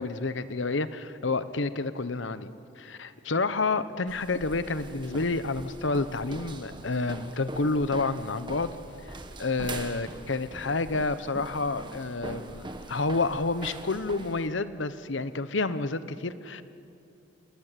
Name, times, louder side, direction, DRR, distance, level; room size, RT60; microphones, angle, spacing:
voice 1, 0.0-2.5 2.8-8.7 9.0-16.6, left 3 dB, 80° left, 13 dB, 1.0 m, -29 dB
sound 1, 4.1-14.5, right 2 dB, 25° right, 1.5 m, -42 dB
28.0 x 20.0 x 9.2 m, 2.7 s
head